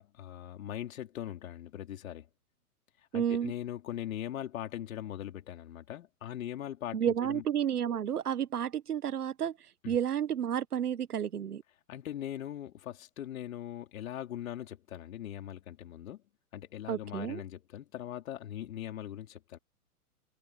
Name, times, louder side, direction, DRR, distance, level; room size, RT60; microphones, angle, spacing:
voice 1, 0.0-2.3 3.1-7.4 9.8-10.0 11.9-16.2 16.5-19.6, left 11 dB, 60° left, 4.5 m, -40 dB
voice 2, 3.1-3.5 6.9-9.6 9.9-11.6 16.9-17.4, right 9 dB, 75° right, 1.4 m, -31 dB
open air
hypercardioid pair, 115°, 46 cm